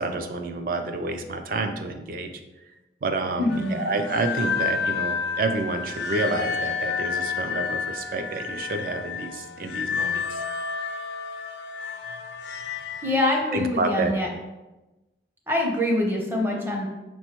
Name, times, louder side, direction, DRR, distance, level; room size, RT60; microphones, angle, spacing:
voice 1, 0.0-2.3 3.0-10.4 13.5-14.1, right 3 dB, 50° right, 7 dB, 0.4 m, -29 dB
voice 2, 3.4-3.8 13.0-14.3 15.5-16.9, left 1 dB, 15° right, 0 dB, 0.6 m, -24 dB
sound 1, 3.5-13.2, left 6 dB, 80° left, 0.4 m, -30 dB
5.3 x 3.1 x 2.9 m, 1.1 s
head